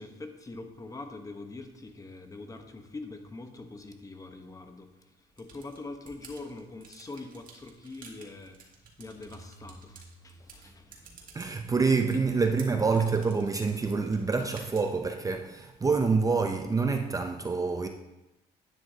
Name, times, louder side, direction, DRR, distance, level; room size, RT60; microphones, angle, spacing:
voice 1, 0.0-8.7 9.0-11.4, left 2 dB, 20° left, 1.0 m, -44 dB
sound 1, 5.4-15.1, right 5 dB, 55° right, 2.0 m, -54 dB
sound 2, 9.0-11.9, right 2 dB, 85° left, 3.8 m, -55 dB
voice 2, 11.3-17.9, right 4 dB, 20° right, 0.6 m, -27 dB
11.0 x 9.4 x 2.8 m
cardioid pair, 110°, 17 cm